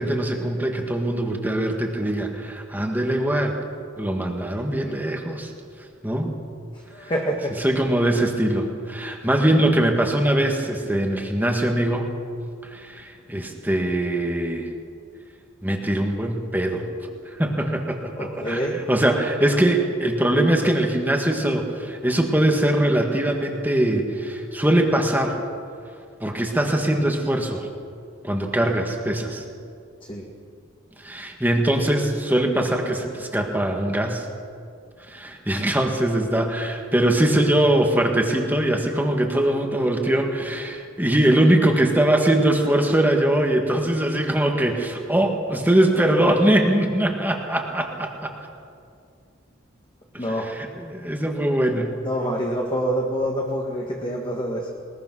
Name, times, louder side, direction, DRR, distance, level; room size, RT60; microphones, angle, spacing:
voice 1, 0.0-3.6 4.0-5.5 6.0-6.3 7.0-7.1 7.6-12.1 12.6-14.7 15.6-16.8 17.4-25.4 26.2-27.7 28.2-29.4 31.0-34.3 35.1-48.3 50.1-52.0, right 1 dB, 10° right, 2 dB, 1.7 m, -22 dB
voice 2, 6.9-7.7 18.2-18.9 30.1-30.3 50.2-50.5 52.0-54.7, equal, 25° left, 0 dB, 1.7 m, -26 dB
21.5 x 20.5 x 6.2 m, 2.4 s
head